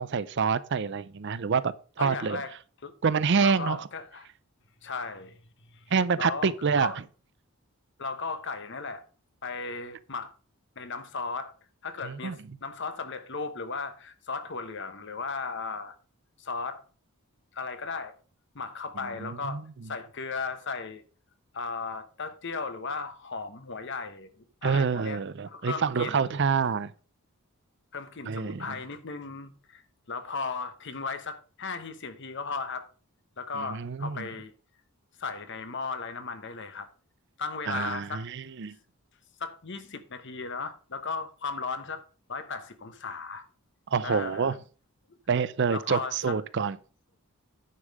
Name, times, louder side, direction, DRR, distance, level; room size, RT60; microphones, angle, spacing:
voice 1, 0.0-2.4 3.0-3.8 5.9-6.9 12.0-12.4 19.2-19.6 24.6-26.9 28.3-28.7 33.6-34.3 37.7-38.7 43.9-44.6 45.3-46.8, right 5 dB, 55° right, 0.5 m, -27 dB
voice 2, 2.0-2.5 2.8-2.9 3.4-4.3 4.8-5.4 5.7-5.9 6.2-7.0 8.0-9.0 9.4-10.3 10.8-11.5 11.8-15.9 16.4-16.8 17.5-18.1 18.5-21.0 21.5-26.4 27.9-32.9 33.4-34.5 35.2-36.9 37.4-38.3 39.4-42.0 42.3-43.4 44.0-44.6 45.1-45.2 45.7-46.4, left 4 dB, 55° left, 1.1 m, -36 dB
9.8 x 5.5 x 4.8 m
head